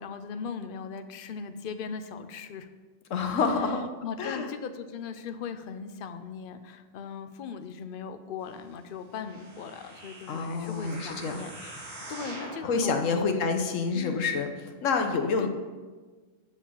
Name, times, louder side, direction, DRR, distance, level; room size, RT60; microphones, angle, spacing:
voice 1, 0.0-2.7 3.5-11.8 12.1-13.3 13.9-14.4 15.4-15.5, left 6 dB, 50° left, 9 dB, 0.7 m, -39 dB
voice 2, 3.1-3.8 4.2-4.5 10.3-11.4 12.6-14.5 14.8-15.5, left 4 dB, 70° left, 5 dB, 1.3 m, -27 dB
sound 1, 9.1-12.7 13.3-13.4, right 1 dB, 90° right, 3.2 m, -44 dB
7.5 x 7.2 x 5.5 m, 1.4 s
omnidirectional pair, 1.4 m